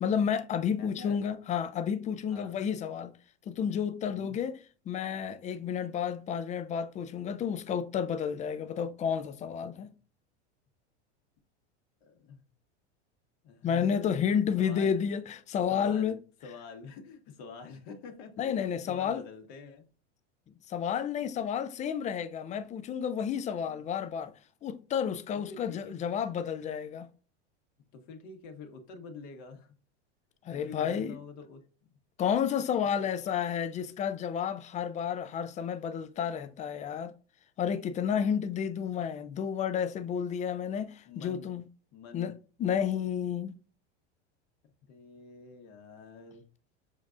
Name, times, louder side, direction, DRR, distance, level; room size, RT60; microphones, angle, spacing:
voice 1, 0.0-3.1 3.5-4.6 4.9-9.9 13.6-16.2 18.4-19.2 20.7-24.3 24.6-27.1 30.4-31.2 32.2-37.1 37.6-41.6 42.1-42.3 42.6-43.6, left 8 dB, 20° left, 0.4 m, -31 dB
voice 2, 0.8-1.2 2.3-2.6 4.1-4.4 9.8-9.9 12.0-12.4 13.4-14.2 14.6-15.0 15.7-16.2 16.4-19.9 23.7-23.8 25.3-26.0 27.9-29.7 30.5-31.6 33.0-33.1 41.0-41.5 41.9-42.3 44.8-46.4, left 4 dB, 55° left, 1.4 m, -47 dB
7.2 x 2.4 x 2.5 m
hypercardioid pair, 110°, 35 cm